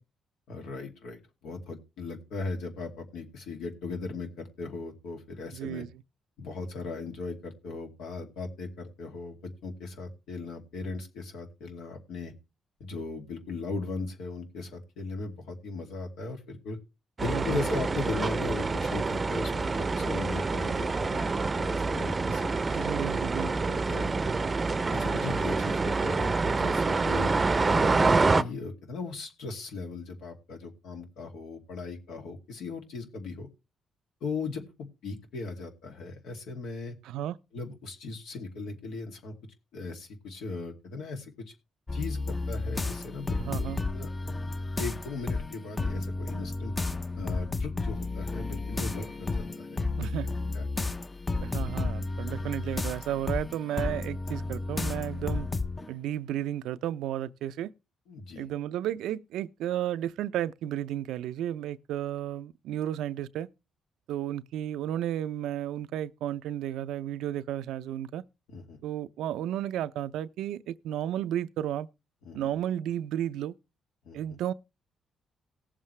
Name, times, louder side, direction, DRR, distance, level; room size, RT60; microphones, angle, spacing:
voice 1, 0.5-5.8 6.4-12.3 12.8-16.8 17.2-22.9 23.4-24.3 25.0-27.3 27.7-33.5 34.2-34.6 35.0-37.0 37.5-39.3 39.7-41.3 41.9-44.1 44.8-46.7 47.1-49.8 50.5-50.7 58.1-58.5 68.5-68.8 72.2-72.5 74.0-74.2, left 3 dB, 85° left, 2.5 m, -38 dB
voice 2, 5.5-5.9 17.3-17.6 22.7-23.5 37.0-37.4 43.4-43.8 50.0-50.4 51.4-55.5 55.9-57.7 58.4-63.5 64.1-68.2 68.8-71.9 72.3-73.5 74.1-74.5, right 11 dB, 85° right, 0.5 m, -33 dB
sound 1, 17.2-28.4, right 3 dB, 30° right, 0.6 m, -27 dB
sound 2, 41.9-55.9, left 3 dB, 25° left, 0.7 m, -32 dB
18.5 x 7.5 x 3.2 m
cardioid pair, 90°, 0 cm